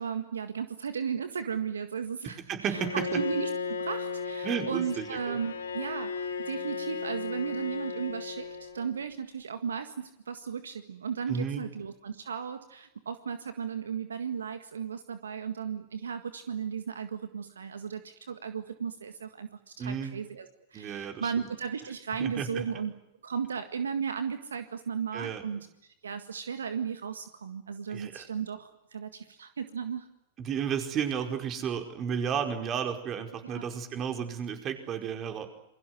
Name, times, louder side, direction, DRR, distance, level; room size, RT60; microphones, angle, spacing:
voice 1, 0.0-22.9 23.2-25.7 26.0-30.1 33.4-33.7, right 7 dB, 80° right, 10 dB, 1.8 m, -35 dB
voice 2, 2.5-3.2 4.4-5.4 11.3-11.6 19.8-20.1 20.7-21.5 22.2-22.6 25.1-25.6 27.9-28.3 30.4-35.5, right 7 dB, 35° right, 7 dB, 4.9 m, -33 dB
Bowed string instrument, 2.7-9.0, left 5 dB, 80° left, 5.3 m, -35 dB
28.0 x 23.0 x 7.9 m, 0.82 s
hypercardioid pair, 100°, 0 cm